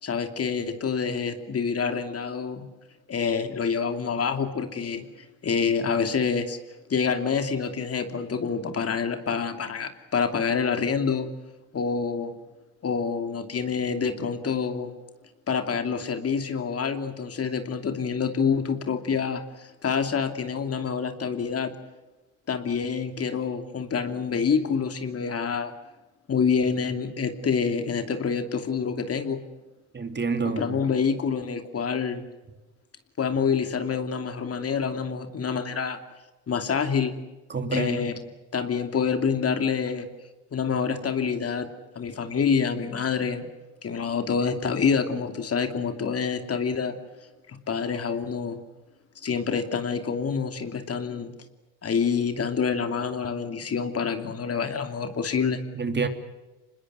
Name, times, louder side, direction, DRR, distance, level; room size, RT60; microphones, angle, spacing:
voice 1, 0.0-2.7 3.1-5.1 5.4-6.6 6.9-11.3 11.7-12.3 12.8-14.9 15.5-21.7 22.5-25.7 26.3-29.4 30.4-32.3 33.2-36.0 36.5-37.2 37.7-38.1 38.5-40.1 40.5-41.7 41.9-43.5 43.8-47.0 47.5-48.6 49.2-51.3 51.8-55.6, left 6 dB, 45° left, 7 dB, 2.8 m, -27 dB
voice 2, 29.9-30.8 37.5-38.0 55.7-56.1, right 4 dB, 30° right, 8 dB, 2.9 m, -27 dB
25.5 x 21.0 x 8.1 m, 1.1 s
supercardioid pair, 70°, 34 cm